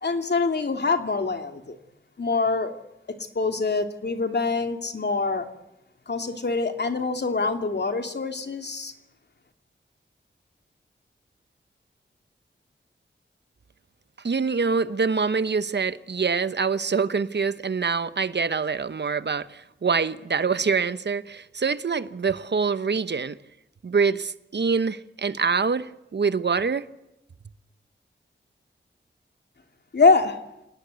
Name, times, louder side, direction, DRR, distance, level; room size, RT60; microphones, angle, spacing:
voice 1, 0.0-1.8 2.2-2.7 3.3-5.5 6.1-8.9 29.9-30.4, left 4 dB, 60° left, 2.8 m, -24 dB
voice 2, 14.2-23.4 23.8-26.9, right 5 dB, 60° right, 1.1 m, -25 dB
27.0 x 19.0 x 8.3 m
wide cardioid pair, 90°, 20 cm